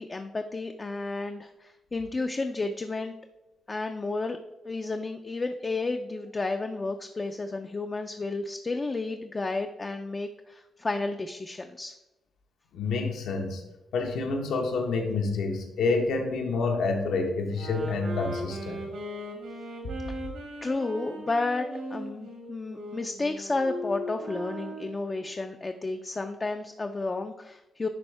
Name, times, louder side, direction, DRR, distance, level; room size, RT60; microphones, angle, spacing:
voice 1, 0.0-3.1 3.7-4.4 4.6-11.9 20.6-27.9, left 3 dB, 25° left, 5 dB, 0.3 m, -32 dB
voice 2, 12.7-13.6 13.9-18.8, left 3 dB, 85° left, 3 dB, 1.1 m, -28 dB
sound 1, 17.5-25.1, equal, 85° right, 2.0 m, -38 dB
10.5 x 3.5 x 3.3 m, 0.97 s
cardioid pair, 135°, 0 cm